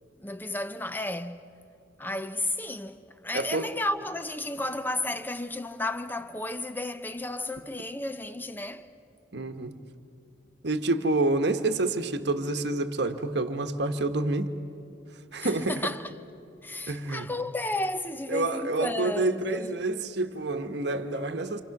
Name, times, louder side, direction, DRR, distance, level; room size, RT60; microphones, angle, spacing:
voice 1, 0.2-1.5 2.0-8.9 15.4-16.2 16.6-19.8 20.9-21.0, left 1 dB, 10° left, 0.8 m, -33 dB
voice 2, 3.3-3.7 9.3-9.8 10.6-14.5 15.3-15.7 16.9-17.3 18.3-21.6, right 2 dB, 65° right, 1.2 m, -28 dB
28.5 x 27.0 x 6.0 m
head